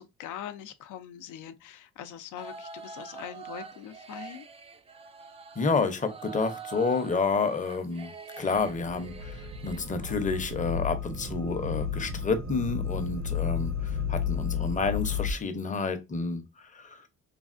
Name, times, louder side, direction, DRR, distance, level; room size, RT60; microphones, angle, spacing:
voice 1, 0.0-4.5, left 10 dB, 80° left, 0.5 m, -42 dB
sound 1, 2.4-10.1, right 5 dB, 20° right, 0.3 m, -45 dB
voice 2, 5.6-8.1 8.4-17.0, left 4 dB, 25° left, 0.6 m, -29 dB
sound 2, 8.5-15.3, left 6 dB, 60° right, 0.7 m, -32 dB
3.3 x 2.3 x 2.4 m
cardioid pair, 90°, 30 cm